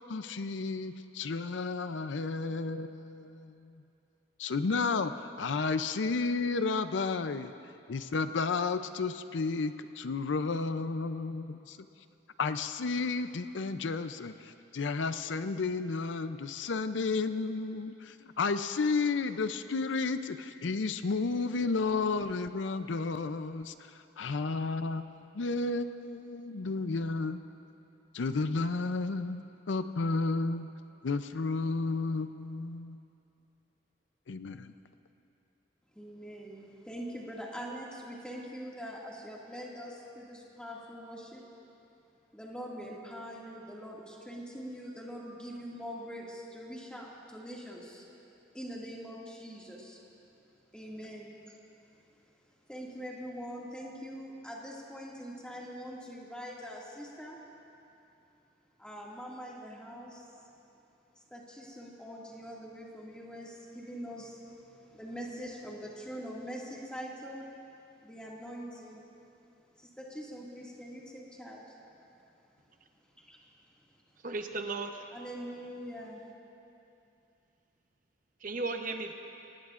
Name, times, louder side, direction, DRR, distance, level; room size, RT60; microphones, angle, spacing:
voice 1, 0.0-3.7 4.4-7.5 7.9-11.8 12.4-23.7 24.2-27.4 28.1-30.7 31.0-33.0 34.3-34.7, left 4 dB, 80° left, 0.5 m, -32 dB
voice 2, 35.9-41.4 42.3-48.0 48.5-50.0 50.7-51.6 52.7-57.4 58.8-60.3 61.3-67.5 68.0-69.0 69.8-71.6 73.3-73.4 75.1-76.2, equal, 5° left, 2.0 m, -43 dB
voice 3, 74.2-75.1 78.4-79.1, right 3 dB, 45° right, 0.8 m, -35 dB
25.5 x 18.5 x 2.5 m
head